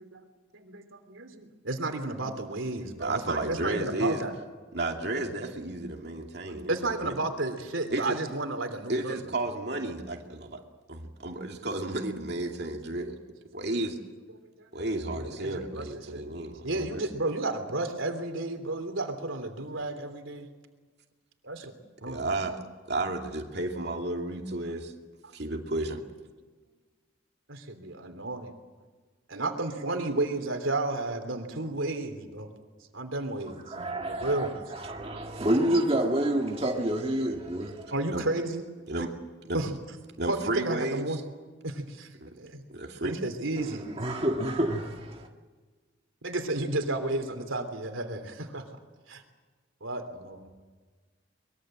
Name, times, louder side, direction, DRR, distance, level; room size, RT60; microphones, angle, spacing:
voice 1, 0.5-4.3 6.7-9.4 14.7-16.2 16.6-20.5 21.4-21.7 22.0-22.2 25.2-25.3 27.5-28.5 29.3-32.5 32.9-34.6 37.9-38.6 39.5-39.7 40.3-41.2 41.6-42.1 42.3-42.6 43.0-43.9 46.2-48.8 49.1-49.2 49.8-50.5, right 2 dB, 90° right, 3.2 m, -32 dB
voice 2, 3.0-4.2 4.7-7.2 7.9-8.2 8.9-10.6 10.9-13.2 13.5-14.0 14.7-17.0 22.1-24.9 25.3-26.0 38.1-38.3 38.9-39.1 39.4-39.6 40.2-41.2 42.2-42.3 42.7-43.2, right 2 dB, 55° right, 2.6 m, -32 dB
voice 3, 33.7-37.9 43.6-45.3, right 1 dB, 30° right, 1.8 m, -28 dB
24.0 x 22.0 x 7.7 m
head